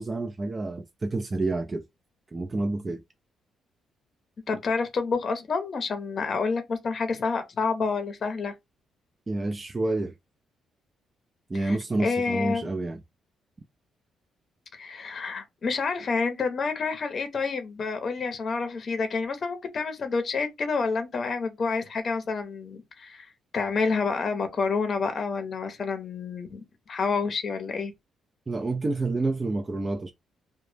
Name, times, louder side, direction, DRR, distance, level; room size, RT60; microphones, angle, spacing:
voice 1, 0.0-1.9 2.3-3.0 9.3-10.1 11.5-13.0 28.5-30.1, right 2 dB, 25° right, 0.3 m, -28 dB
voice 2, 4.5-8.5 11.5-12.7 14.7-23.3 23.5-27.9, left 4 dB, 50° left, 0.6 m, -29 dB
2.0 x 2.0 x 3.2 m
cardioid pair, 80°, 0 cm